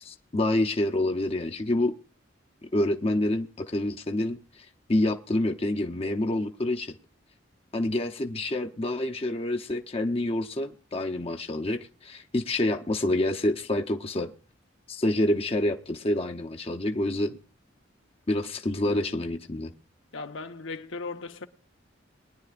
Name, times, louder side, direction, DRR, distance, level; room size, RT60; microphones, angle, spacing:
voice 1, 0.0-1.9 2.7-4.4 4.9-7.0 7.7-14.3 14.9-17.4 18.3-19.7, left 1 dB, 30° left, 0.7 m, -27 dB
voice 2, 20.1-21.5, left 3 dB, 80° left, 1.0 m, -37 dB
22.5 x 10.5 x 2.4 m
head